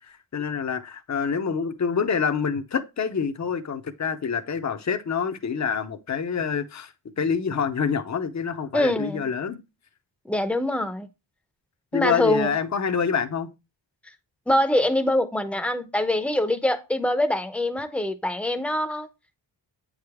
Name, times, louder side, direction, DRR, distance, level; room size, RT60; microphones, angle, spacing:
voice 1, 0.0-9.6 11.9-13.5, left 6 dB, 40° left, 0.7 m, -27 dB
voice 2, 8.7-9.3 10.2-11.1 11.9-12.5 14.5-19.1, left 1 dB, 5° left, 0.7 m, -24 dB
8.7 x 4.9 x 3.5 m
wide cardioid pair, 165°, 44 cm